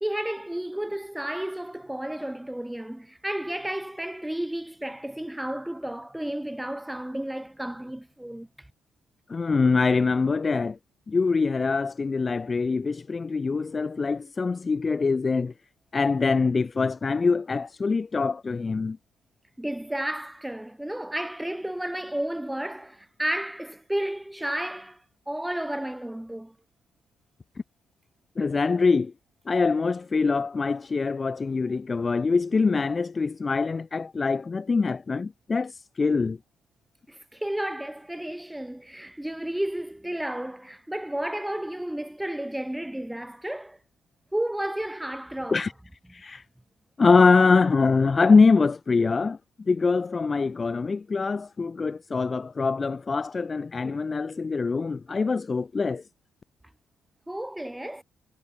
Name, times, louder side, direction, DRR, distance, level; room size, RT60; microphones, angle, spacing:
voice 1, 0.0-8.7 19.6-26.5 37.1-43.8 44.3-45.6 57.3-58.0, right 1 dB, 5° right, 2.5 m, -32 dB
voice 2, 9.3-10.8 11.1-15.5 15.9-19.0 28.4-29.1 29.5-36.4 45.5-45.7 46.1-46.4 47.0-49.4 49.7-56.0, left 4 dB, 35° left, 0.6 m, -23 dB
supercardioid pair, 60°, 0 cm